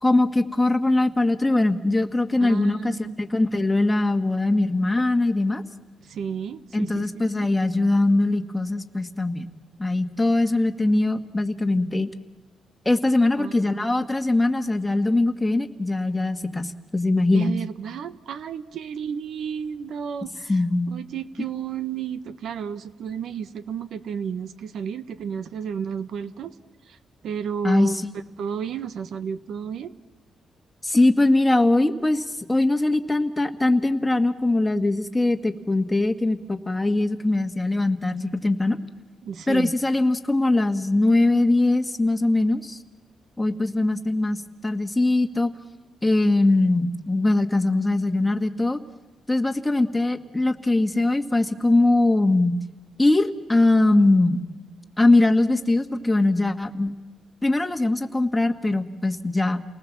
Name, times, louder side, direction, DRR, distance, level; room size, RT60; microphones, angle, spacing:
voice 1, 0.0-5.6 6.7-9.5 9.8-12.1 12.8-17.6 20.5-20.9 27.6-28.0 30.8-38.8 39.5-42.8 43.4-45.5 46.0-48.8 49.3-52.6 53.0-54.4 55.0-56.9 57.4-59.6, left 2 dB, 10° left, 6 dB, 1.6 m, -21 dB
voice 2, 2.4-3.1 6.0-7.1 7.4-7.5 13.4-13.9 17.3-20.5 20.9-26.5 26.9-27.0 27.2-28.0 28.4-29.9 39.2-39.7, right 7 dB, 70° right, 13 dB, 1.3 m, -32 dB
29.5 x 19.5 x 7.3 m, 1.2 s
cardioid pair, 110°, 0 cm